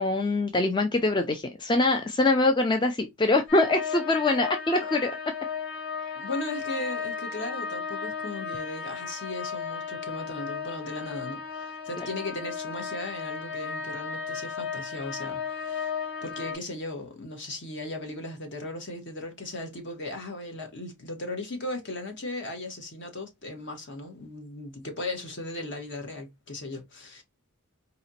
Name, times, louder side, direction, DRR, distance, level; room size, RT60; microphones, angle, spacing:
voice 1, 0.0-5.1 12.0-12.1, left 2 dB, 20° left, 0.4 m, -24 dB
sound 1, 3.5-16.6, left 6 dB, 75° left, 1.9 m, -35 dB
voice 2, 6.1-15.9 16.2-27.2, left 2 dB, 55° left, 1.2 m, -37 dB
4.1 x 2.9 x 2.7 m
head